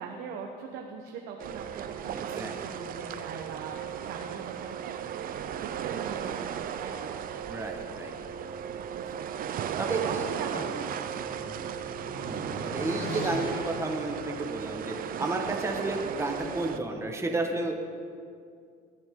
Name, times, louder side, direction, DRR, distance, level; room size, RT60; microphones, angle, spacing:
voice 1, 0.0-3.8 4.1-4.9 5.6-7.2 8.9-9.6 10.0-11.8, right 6 dB, 90° right, 2 dB, 1.1 m, -41 dB
sound 1, 1.4-16.8, right 8 dB, 60° right, 0.7 m, -35 dB
voice 2, 2.3-2.8 3.1-3.2 7.5-8.1 9.8-10.3 10.5-10.7 12.3-17.7, right 2 dB, 15° right, 2 dB, 1.5 m, -32 dB
sound 2, 10.1-15.1, left 5 dB, 60° left, 1.2 m, -42 dB
18.5 x 10.5 x 3.8 m, 2.3 s
cardioid pair, 110°, 17 cm